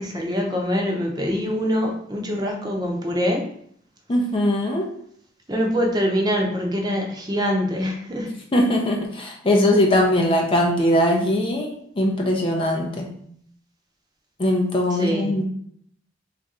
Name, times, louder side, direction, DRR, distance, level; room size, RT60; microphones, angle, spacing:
voice 1, 0.0-3.4 5.5-8.3 14.9-15.4, equal, 20° right, 0 dB, 0.7 m, -24 dB
voice 2, 4.1-4.9 8.5-13.1 14.4-15.4, left 1 dB, 30° left, 1 dB, 0.5 m, -20 dB
3.4 x 2.5 x 4.1 m, 0.65 s
head